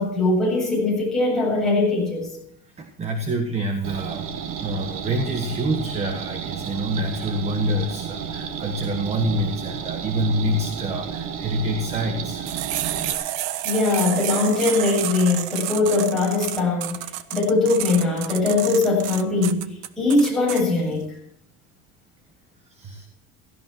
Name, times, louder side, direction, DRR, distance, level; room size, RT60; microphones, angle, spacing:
voice 1, 0.0-2.3 13.6-17.0 17.3-19.7 20.0-21.1, left 3 dB, ahead, 7.7 m, -21 dB
voice 2, 2.8-12.5 22.7-23.1, right 1 dB, 20° right, 1.5 m, -27 dB
sound 1, 3.8-13.1, right 7 dB, 45° right, 1.6 m, -32 dB
sound 2, 12.5-20.6, right 13 dB, 80° right, 1.3 m, -30 dB
17.0 x 16.0 x 4.6 m
cardioid pair, 175°, 31 cm